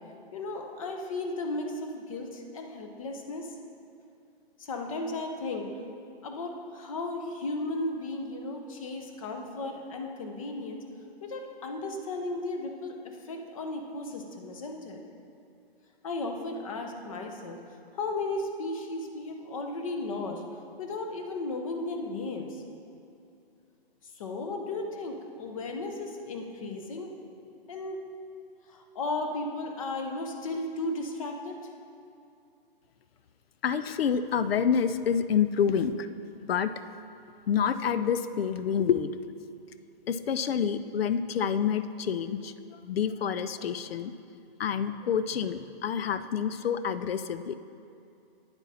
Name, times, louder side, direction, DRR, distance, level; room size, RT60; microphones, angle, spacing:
voice 1, 0.3-3.6 4.6-5.7 6.2-10.8 11.2-15.0 16.0-17.6 17.9-20.4 20.8-22.6 24.2-27.1 27.7-28.0 28.7-31.6, left 2 dB, 35° left, 4 dB, 0.9 m, -35 dB
voice 2, 33.6-36.1 36.4-36.7 37.5-39.2 40.1-42.5 42.8-44.1 44.6-47.6, left 7 dB, 80° left, 13 dB, 0.5 m, -28 dB
9.8 x 7.9 x 4.2 m, 2.6 s
hypercardioid pair, 165°, 30 cm